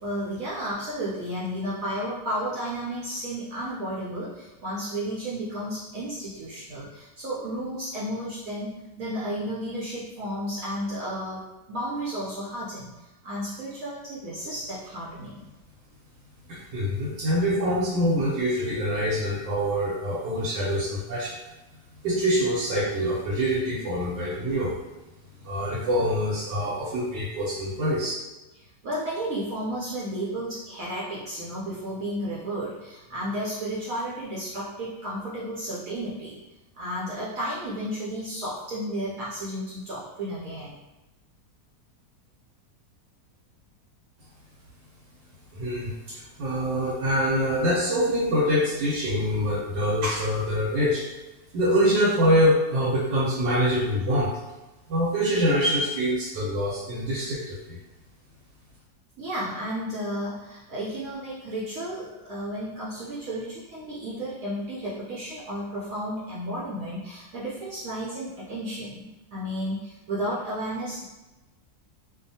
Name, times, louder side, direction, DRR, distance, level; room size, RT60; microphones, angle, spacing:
voice 1, 0.0-15.4 28.8-36.4 36.7-40.8 59.2-71.0, equal, 70° right, -7 dB, 0.8 m, -33 dB
voice 2, 16.5-21.4 22.0-24.8 25.4-28.1 45.5-51.0 51.5-54.3 54.9-57.8, equal, 85° right, -5 dB, 1.3 m, -25 dB
2.7 x 2.3 x 2.6 m, 1.1 s
omnidirectional pair, 1.9 m